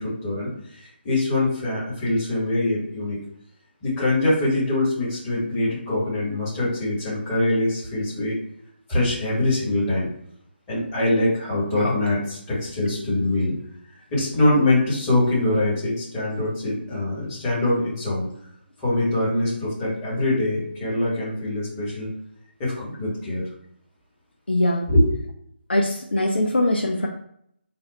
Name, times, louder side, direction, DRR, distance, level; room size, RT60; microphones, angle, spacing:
voice 1, 0.0-3.2 3.8-8.4 8.9-10.1 10.7-13.5 14.1-18.3 18.8-22.1 22.6-23.4 24.9-25.1, left 1 dB, 15° left, -8 dB, 1.7 m, -23 dB
voice 2, 24.5-24.9 25.7-27.1, left 1 dB, 65° left, 1 dB, 0.6 m, -22 dB
4.1 x 2.5 x 4.3 m, 0.70 s
figure-of-eight pair, 150°, 6 cm